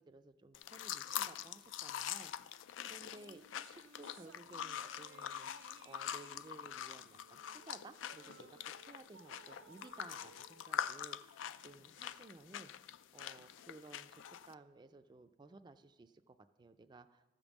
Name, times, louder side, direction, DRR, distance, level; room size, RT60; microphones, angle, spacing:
voice 1, 0.0-5.5 5.8-8.5 8.8-17.3, right 3 dB, 25° right, 8 dB, 0.3 m, -57 dB
sound 1, 0.5-14.5, left 10 dB, 85° left, 0.3 m, -44 dB
sound 2, 3.0-11.6, right 6 dB, 80° right, 0.5 m, -62 dB
13.5 x 5.2 x 7.2 m, 1.2 s
head